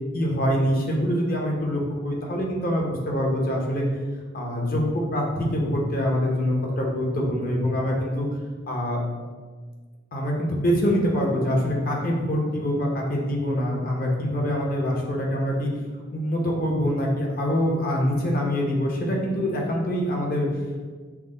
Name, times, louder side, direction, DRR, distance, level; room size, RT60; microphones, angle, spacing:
voice 1, 0.1-3.8 4.3-8.3 8.7-9.0 10.1-15.7 16.1-20.5, equal, 50° left, -1 dB, 0.8 m, -24 dB
5.9 x 2.1 x 3.7 m, 1.5 s
head